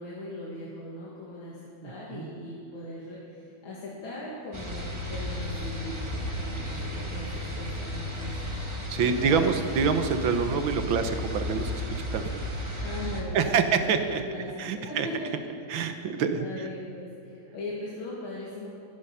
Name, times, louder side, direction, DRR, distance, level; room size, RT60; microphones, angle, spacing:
voice 1, 0.0-9.5 10.3-10.5 12.8-15.3 16.4-18.7, left 2 dB, 80° left, -6 dB, 2.9 m, -39 dB
voice 2, 1.8-2.3 8.9-12.4 13.3-14.2 14.6-15.1 15.7-16.7, right 6 dB, 80° right, 8 dB, 1.8 m, -27 dB
sound 1, 4.5-13.2, left 1 dB, 15° right, 1.8 m, -34 dB
22.0 x 10.5 x 5.6 m, 2.8 s
omnidirectional pair, 2.2 m